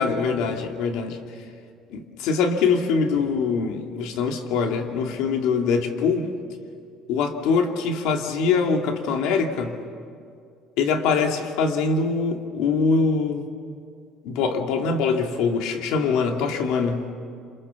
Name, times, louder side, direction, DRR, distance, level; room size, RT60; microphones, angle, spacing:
voice 1, 0.0-1.4 1.9-6.3 7.1-9.8 10.8-13.5 14.2-17.1, left 5 dB, 80° left, 4 dB, 2.5 m, -23 dB
27.5 x 27.5 x 7.2 m, 2.3 s
cardioid pair, 145°, 0 cm